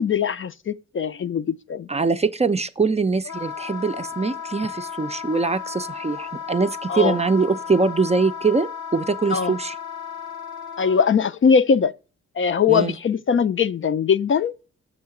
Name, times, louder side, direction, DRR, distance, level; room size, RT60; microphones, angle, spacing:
voice 1, 0.0-1.9 6.9-7.2 9.3-9.5 10.8-11.9 12.4-14.5, left 6 dB, 45° left, 0.4 m, -21 dB
voice 2, 1.9-9.7 12.7-13.0, right 4 dB, 25° right, 0.4 m, -23 dB
Wind instrument woodwind instrument, 3.2-11.1, left 7 dB, 85° left, 0.9 m, -34 dB
7.2 x 2.8 x 5.8 m
cardioid pair, 75°, 29 cm